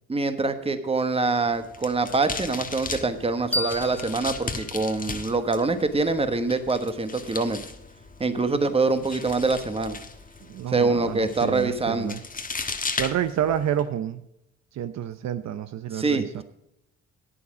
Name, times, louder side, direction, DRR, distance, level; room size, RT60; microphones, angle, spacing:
voice 1, 0.1-7.6 8.2-10.0 10.7-12.2 15.9-16.4, right 3 dB, 20° right, 9 dB, 1.3 m, -25 dB
sound 1, 1.5-13.8, left 4 dB, 25° left, 1.3 m, -37 dB
sound 2, 3.5-6.3, equal, 5° left, 1.3 m, -35 dB
voice 2, 10.4-12.2 13.0-14.2 14.7-16.4, right 10 dB, 60° right, 11 dB, 0.7 m, -29 dB
11.0 x 8.7 x 4.9 m, 0.83 s
cardioid pair, 90°, 30 cm